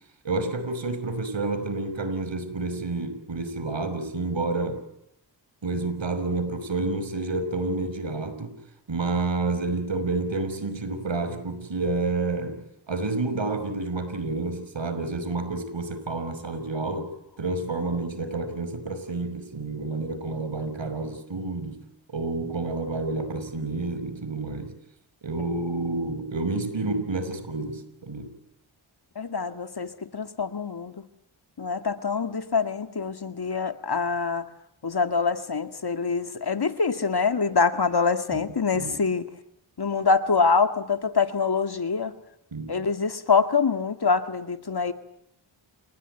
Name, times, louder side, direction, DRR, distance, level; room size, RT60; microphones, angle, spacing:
voice 1, 0.2-4.8 5.6-8.5 8.9-17.1 17.4-21.8 22.1-24.7 25.2-28.3 38.3-38.4 38.7-39.0 42.5-42.8, right 3 dB, 65° right, 11 dB, 5.5 m, -29 dB
voice 2, 29.2-30.9 31.6-34.5 34.8-39.3 39.8-42.1 42.7-44.9, left 5 dB, 50° left, 8 dB, 2.2 m, -25 dB
28.5 x 20.5 x 9.2 m, 0.79 s
cardioid pair, 50°, 49 cm